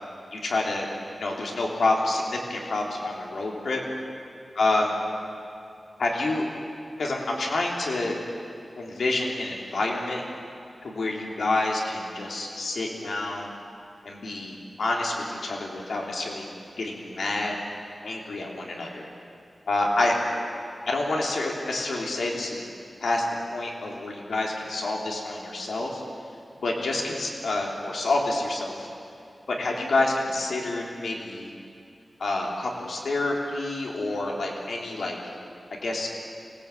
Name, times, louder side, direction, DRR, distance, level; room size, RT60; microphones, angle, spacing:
voice 1, 0.3-0.9 1.2-3.8 4.6-4.9 6.0-6.4 7.0-8.2 8.8-10.2 10.8-13.5 14.0-16.5 16.8-17.5 18.0-19.1 19.7-20.2 20.9-22.6 23.0-23.2 23.5-26.0 26.6-28.9 29.5-31.5 32.2-35.2 35.8-36.1, left 2 dB, 85° left, -1 dB, 3.3 m, -28 dB
27.0 x 17.5 x 8.4 m, 2.5 s
wide cardioid pair, 110°, 0 cm